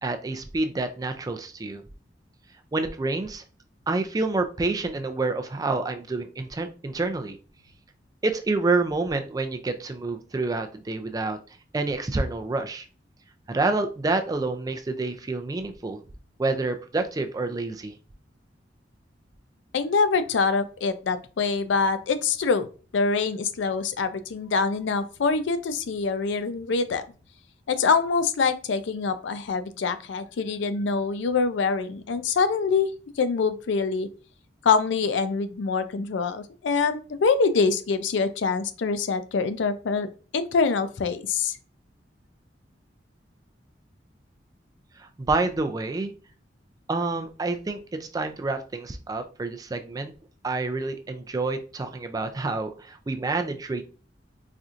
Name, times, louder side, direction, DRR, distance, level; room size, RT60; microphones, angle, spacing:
voice 1, 0.0-1.8 2.7-3.4 3.9-7.4 8.2-11.4 11.7-12.9 13.5-16.0 16.4-17.9 45.0-46.1 46.9-50.1 50.4-53.8, right 3 dB, 20° right, 7 dB, 0.3 m, -28 dB
voice 2, 19.7-22.7 22.9-27.0 27.7-32.9 33.2-34.1 34.6-40.1 40.3-41.6, left 4 dB, 80° left, 11 dB, 0.4 m, -25 dB
4.2 x 2.5 x 2.4 m, 0.36 s
head